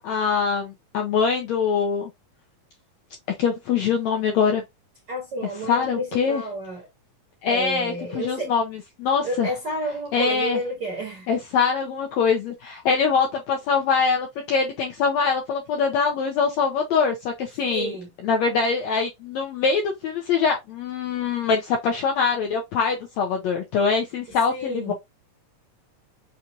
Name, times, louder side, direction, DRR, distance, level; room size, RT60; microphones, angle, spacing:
voice 1, 0.0-2.1 3.4-4.6 5.7-6.4 7.4-8.6 9.0-9.5 10.1-10.6 11.3-17.9 18.2-24.9, left 5 dB, 75° left, 1.6 m, -23 dB
voice 2, 5.1-6.9 7.4-8.5 9.2-11.3 17.6-18.1 24.5-24.9, right 1 dB, 50° right, 1.3 m, -30 dB
5.6 x 2.6 x 2.8 m
omnidirectional pair, 4.0 m